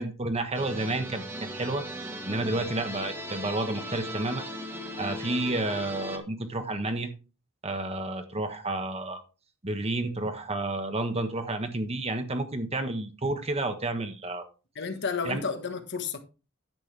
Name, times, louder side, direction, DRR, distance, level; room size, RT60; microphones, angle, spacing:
voice 1, 0.0-4.4 5.0-7.1 7.6-9.2 9.6-14.4 15.2-15.4, right 2 dB, 30° right, 1.3 m, -31 dB
sound 1, 0.5-6.2, equal, 10° right, 1.5 m, -38 dB
voice 2, 14.7-16.2, left 5 dB, 55° left, 1.3 m, -31 dB
10.5 x 7.9 x 3.4 m
head